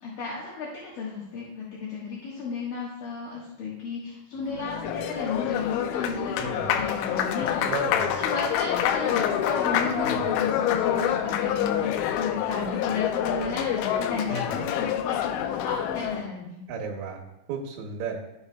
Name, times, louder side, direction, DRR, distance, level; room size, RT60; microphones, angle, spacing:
voice 1, 0.0-7.7 8.1-11.9 12.1-16.6, left 4 dB, 65° left, -5 dB, 2.5 m, -33 dB
Applause, 4.4-16.3, left 10 dB, 85° left, 3.0 m, -27 dB
Bowed string instrument, 5.2-13.4, right 1 dB, 5° left, 0.5 m, -46 dB
voice 2, 6.4-6.8 7.6-8.1 10.0-10.3 14.3-14.6 16.7-17.2 17.5-18.2, right 4 dB, 75° right, -1 dB, 3.2 m, -34 dB
13.5 x 6.8 x 2.2 m, 0.94 s
omnidirectional pair, 5.5 m